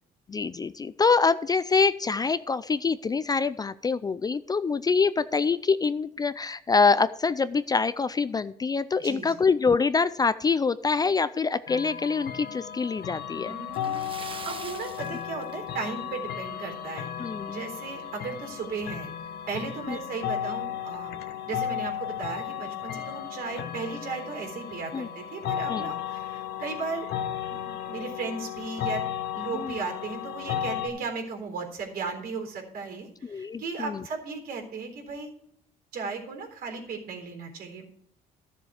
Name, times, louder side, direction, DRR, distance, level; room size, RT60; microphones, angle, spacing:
voice 1, 0.3-13.5 17.2-17.6 19.9-20.0 24.9-25.1 25.7-25.9 29.5-29.7 33.3-34.0, left 4 dB, 20° left, 14 dB, 0.4 m, -25 dB
voice 2, 9.0-9.4 13.4-17.1 17.5-19.1 19.5-21.1 21.5-27.1 27.5-35.3 35.9-37.8, right 4 dB, 60° right, 3 dB, 3.9 m, -36 dB
sound 1, 11.7-30.9, left 10 dB, 70° left, 1.3 m, -34 dB
Splash splatter, 13.7-16.1 16.4-16.6 17.0-17.1 18.5-18.6 19.0-19.1 19.7-19.9, right 5 dB, 30° right, 1.1 m, -43 dB
13.0 x 7.2 x 4.9 m, 0.70 s
cardioid pair, 110°, 17 cm